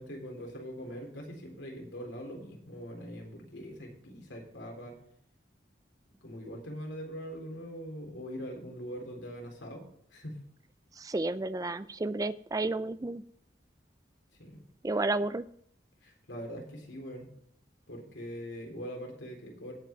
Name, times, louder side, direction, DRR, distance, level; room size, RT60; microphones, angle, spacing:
voice 1, 0.0-5.0 6.2-9.8 10.1-10.4 14.4-14.6 16.0-17.3 17.9-19.7, equal, 85° left, 0 dB, 3.8 m, -42 dB
voice 2, 11.0-13.2 14.8-15.5, right 2 dB, 20° right, 15 dB, 0.4 m, -31 dB
18.0 x 5.9 x 4.5 m, 0.69 s
head